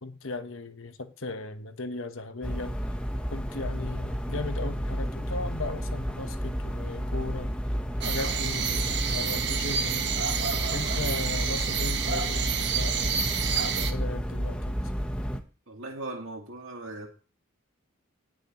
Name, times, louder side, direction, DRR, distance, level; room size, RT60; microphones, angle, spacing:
voice 1, 0.0-2.8 3.3-7.6 8.0-10.1 10.7-13.3 13.7-14.8, left 3 dB, 70° left, 1.1 m, -37 dB
sound 1, 2.4-15.4, equal, 5° left, 0.9 m, -31 dB
sound 2, 8.0-13.9, right 7 dB, 55° right, 1.2 m, -29 dB
voice 2, 15.7-17.1, right 2 dB, 70° right, 2.1 m, -38 dB
18.5 x 6.3 x 3.0 m
head